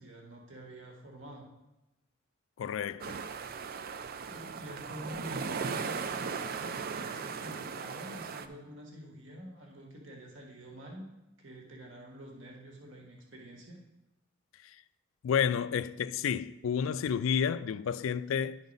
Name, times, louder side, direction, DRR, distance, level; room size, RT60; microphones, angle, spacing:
voice 1, 0.0-1.5 4.3-6.6 6.9-11.1 11.4-13.8, equal, 65° right, 1.4 m, -47 dB
voice 2, 2.6-3.2 15.2-18.6, left 7 dB, 75° left, 0.3 m, -30 dB
sound 1, 3.0-8.5, right 5 dB, 50° right, 0.4 m, -37 dB
10.5 x 3.9 x 5.2 m
head